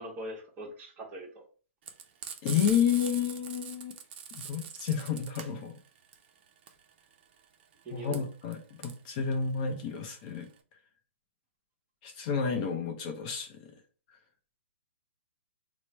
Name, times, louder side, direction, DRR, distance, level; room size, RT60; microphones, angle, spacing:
voice 1, 0.0-1.4 7.8-8.2, right 1 dB, 20° right, 0 dB, 0.9 m, -41 dB
Frying (food), 1.8-10.6, right 8 dB, 45° right, 0.5 m, -43 dB
voice 2, 2.4-3.9 4.3-5.7 7.9-10.5 12.0-13.7, left 7 dB, 35° left, 4 dB, 0.4 m, -30 dB
3.1 x 2.0 x 4.1 m, 0.39 s
hypercardioid pair, 150°, 7 cm